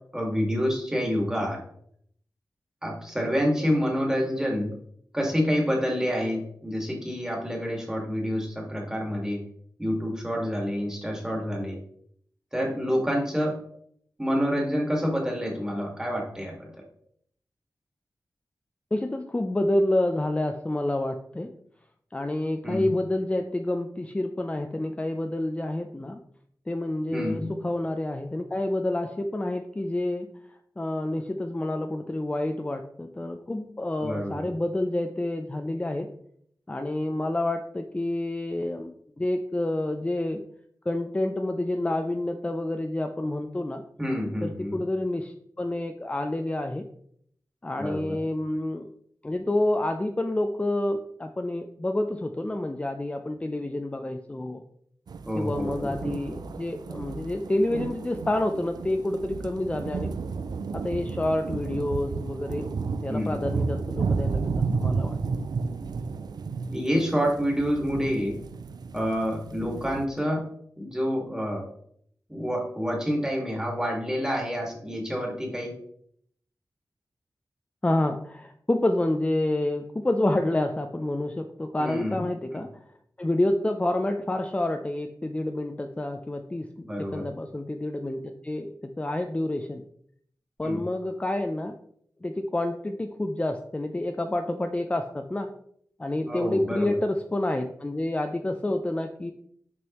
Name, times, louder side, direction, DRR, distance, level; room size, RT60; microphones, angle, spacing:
voice 1, 0.1-1.6 2.8-4.7 5.1-9.4 9.8-11.8 12.5-13.5 14.2-16.8 22.6-23.0 27.1-27.5 34.0-34.5 44.0-44.8 47.8-48.2 55.3-55.9 63.1-63.4 66.7-68.4 68.9-70.5 70.8-71.7 72.3-75.7 81.8-82.3 82.5-82.6 86.8-87.2 90.6-90.8 96.2-97.0, equal, 10° right, -1 dB, 1.9 m, -28 dB
voice 2, 18.9-21.5 22.1-26.2 26.7-30.3 30.8-36.1 36.7-40.4 40.9-43.8 44.4-46.9 47.6-48.9 49.2-54.6 55.3-60.1 60.7-62.7 63.0-65.2 77.8-82.7 83.2-86.9 87.1-89.8 90.6-91.8 92.2-95.5 96.0-99.3, left 1 dB, 20° left, 5 dB, 0.4 m, -28 dB
sound 1, 55.1-70.0, right 4 dB, 75° right, 0.4 m, -32 dB
6.3 x 5.2 x 3.0 m, 0.66 s
wide cardioid pair, 85°, 7 cm